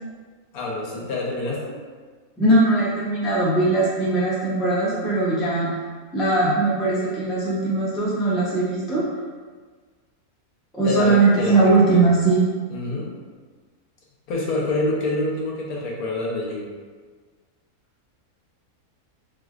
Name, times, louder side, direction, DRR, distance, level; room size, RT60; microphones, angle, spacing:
voice 1, 0.5-1.8 10.8-12.0 12.7-13.1 14.3-16.7, left 2 dB, 80° left, -3 dB, 1.2 m, -26 dB
voice 2, 2.4-5.7 6.1-9.0 10.7-12.5, right 2 dB, ahead, -8 dB, 0.3 m, -20 dB
4.7 x 2.1 x 2.4 m, 1.5 s
omnidirectional pair, 1.6 m